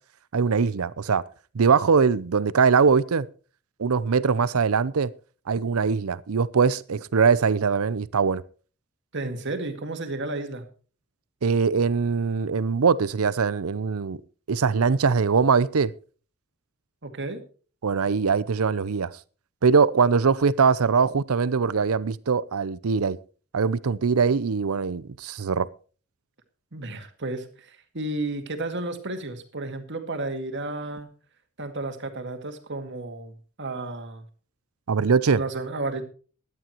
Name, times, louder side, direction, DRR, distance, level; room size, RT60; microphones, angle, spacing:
voice 1, 0.3-1.2 1.5-3.3 3.8-5.1 5.5-8.4 11.4-14.2 14.5-15.9 17.8-19.1 19.6-23.2 23.5-25.7 34.9-35.4, right 5 dB, 85° right, 0.6 m, -22 dB
voice 2, 9.1-10.6 17.0-17.4 26.7-31.1 31.6-33.3 33.6-34.2 35.3-36.0, right 2 dB, 55° right, 2.0 m, -32 dB
17.0 x 11.5 x 3.0 m
head